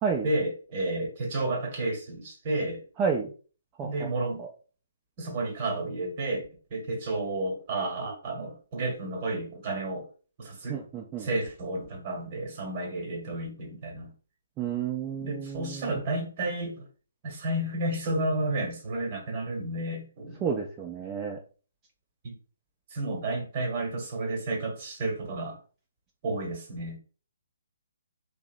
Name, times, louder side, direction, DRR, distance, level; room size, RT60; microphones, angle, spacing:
voice 1, 0.2-2.8 3.8-4.4 5.2-6.5 6.7-10.1 10.4-10.8 11.2-14.1 15.2-16.9 17.2-20.5 22.2-22.4 22.9-25.6 26.2-27.0, right 2 dB, 35° right, 1.0 m, -31 dB
voice 2, 3.0-3.3 3.8-4.1 4.4-4.5 10.7-11.3 14.6-15.9 20.4-21.4, right 6 dB, 20° right, 0.4 m, -31 dB
2.7 x 2.0 x 2.5 m
figure-of-eight pair, 140°, 0 cm